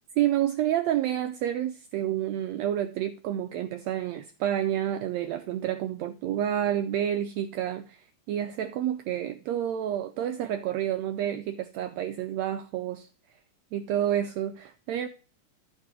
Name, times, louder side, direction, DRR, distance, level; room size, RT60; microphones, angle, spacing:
voice 1, 0.2-13.1 13.7-15.1, right 11 dB, 90° right, 1.5 m, -29 dB
13.5 x 4.6 x 4.6 m
omnidirectional pair, 3.6 m